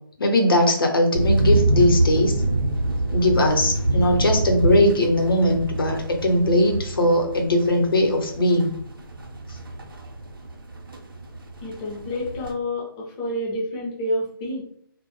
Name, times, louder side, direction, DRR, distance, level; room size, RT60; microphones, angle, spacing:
voice 1, 0.2-2.3 3.1-8.7, left 1 dB, 70° left, 2 dB, 0.7 m, -20 dB
sound 1, 1.1-12.5, right 2 dB, 70° right, 0.6 m, -26 dB
voice 2, 11.6-14.6, left 1 dB, 15° left, -5 dB, 0.4 m, -28 dB
2.1 x 2.0 x 3.0 m, 0.64 s
figure-of-eight pair, 155°, 12 cm